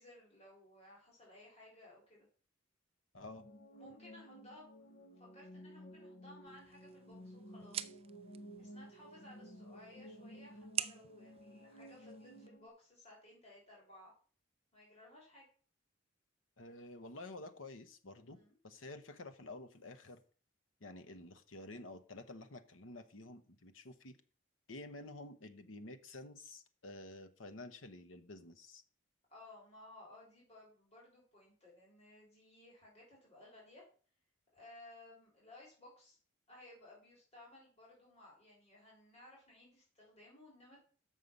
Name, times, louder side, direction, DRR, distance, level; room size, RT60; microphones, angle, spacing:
voice 1, 0.0-2.3 3.7-8.0 8.6-14.1 14.7-15.5 18.3-18.6 29.3-33.9 34.5-36.2 36.5-40.8, left 1 dB, 30° left, -4 dB, 3.4 m, -59 dB
voice 2, 3.1-3.5 16.6-18.4 18.6-20.2 20.8-24.2 24.7-28.8, left 2 dB, 75° left, 9 dB, 1.0 m, -50 dB
sound 1, 3.3-12.7, equal, 50° left, 0.7 m, -54 dB
sound 2, 6.5-12.5, right 10 dB, 30° right, 0.3 m, -47 dB
6.6 x 5.5 x 6.7 m, 0.42 s
head